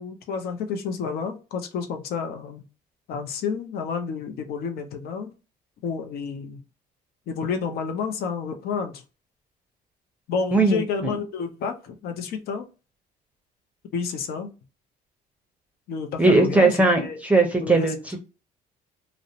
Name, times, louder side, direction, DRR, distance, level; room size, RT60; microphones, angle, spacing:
voice 1, 0.0-2.6 3.1-5.3 5.8-6.6 7.3-9.0 10.3-12.7 13.9-14.5 15.9-17.2 17.6-17.9, left 5 dB, 65° left, 0.6 m, -30 dB
voice 2, 10.5-11.1 16.2-18.0, right 3 dB, 10° right, 0.6 m, -19 dB
2.5 x 2.0 x 2.7 m
cardioid pair, 110°, 17 cm